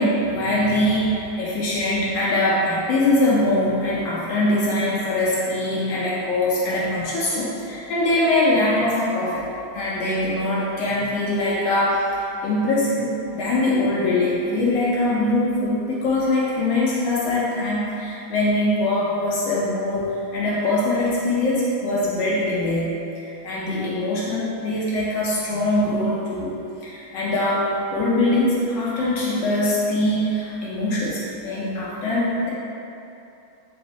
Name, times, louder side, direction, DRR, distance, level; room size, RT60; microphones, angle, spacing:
voice 1, 0.0-9.4 9.7-22.9 23.2-26.5 26.8-32.5, left 1 dB, 70° left, -7 dB, 1.2 m, -22 dB
4.0 x 2.6 x 4.0 m, 2.9 s
omnidirectional pair, 2.3 m